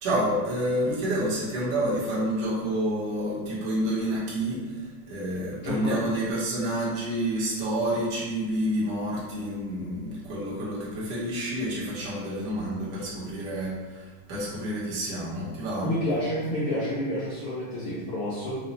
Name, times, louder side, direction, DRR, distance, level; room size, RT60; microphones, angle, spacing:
voice 1, 0.0-15.9, right 1 dB, 70° right, -7 dB, 1.0 m, -29 dB
voice 2, 5.6-6.0 15.8-18.6, left 1 dB, 80° left, -8 dB, 1.2 m, -29 dB
5.4 x 2.1 x 4.0 m, 1.4 s
omnidirectional pair, 3.6 m